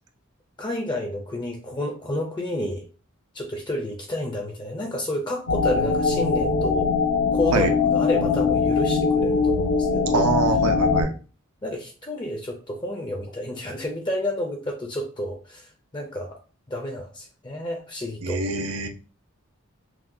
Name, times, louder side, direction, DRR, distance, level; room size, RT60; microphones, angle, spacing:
voice 1, 0.6-2.9 3.3-6.9 7.3-10.3 11.6-16.4 16.7-18.4, left 1 dB, 20° left, 2 dB, 0.5 m, -30 dB
sound 1, 5.5-11.0, left 5 dB, 70° left, 0.7 m, -21 dB
voice 2, 10.1-11.1 18.2-18.9, right 4 dB, 85° right, 7 dB, 0.6 m, -24 dB
5.9 x 2.2 x 2.7 m, 0.37 s
head